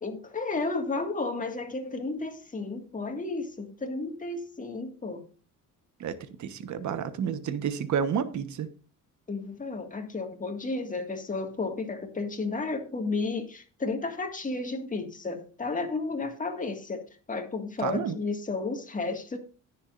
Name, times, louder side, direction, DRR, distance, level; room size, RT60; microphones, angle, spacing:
voice 1, 0.0-5.2 9.3-17.0 17.3-19.4, left 3 dB, 25° left, 1.9 m, -32 dB
voice 2, 6.4-8.7 17.8-18.2, right 7 dB, 60° right, 1.2 m, -30 dB
20.0 x 7.0 x 2.5 m
cardioid pair, 135°, 33 cm